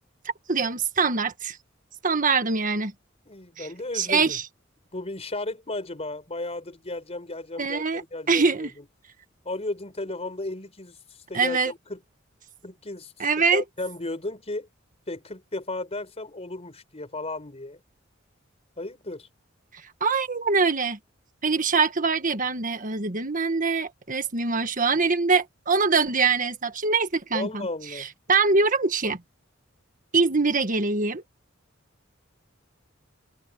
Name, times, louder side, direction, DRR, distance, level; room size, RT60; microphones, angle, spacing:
voice 1, 0.5-1.6 2.0-2.9 3.6-3.7 3.9-4.4 7.6-8.0 8.3-8.7 11.3-11.7 13.2-13.6 20.0-21.0 21.4-27.7 27.9-29.2 30.1-31.2, right 4 dB, 40° right, 1.6 m, -23 dB
voice 2, 3.3-4.4 4.9-8.8 9.4-12.0 12.6-14.7 15.1-17.8 18.8-19.3 27.3-28.1, left 2 dB, 30° left, 4.5 m, -34 dB
head